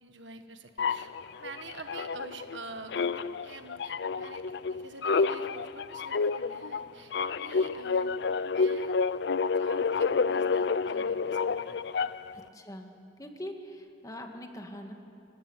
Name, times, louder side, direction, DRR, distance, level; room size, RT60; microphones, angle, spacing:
voice 1, 0.0-1.1 1.4-7.1 7.4-8.1 8.5-9.0 9.5-12.1, right 3 dB, 90° right, 7 dB, 1.6 m, -47 dB
sound 1, 0.8-2.6 2.9-12.4, left 4 dB, 70° left, 0.5 m, -29 dB
voice 2, 12.3-12.9 13.2-14.9, equal, 20° left, 4 dB, 2.0 m, -42 dB
26.5 x 15.5 x 10.0 m, 2.7 s
head